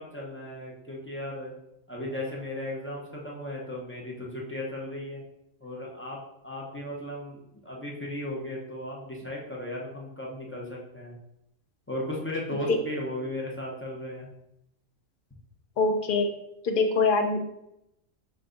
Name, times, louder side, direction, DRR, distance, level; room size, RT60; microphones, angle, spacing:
voice 1, 0.0-1.5 1.9-5.2 5.6-11.2 11.9-14.3, left 1 dB, 15° left, -3 dB, 0.5 m, -36 dB
voice 2, 15.8-16.3 16.6-17.4, left 3 dB, 55° left, 3 dB, 0.6 m, -23 dB
5.2 x 2.3 x 3.8 m, 0.83 s
omnidirectional pair, 1.4 m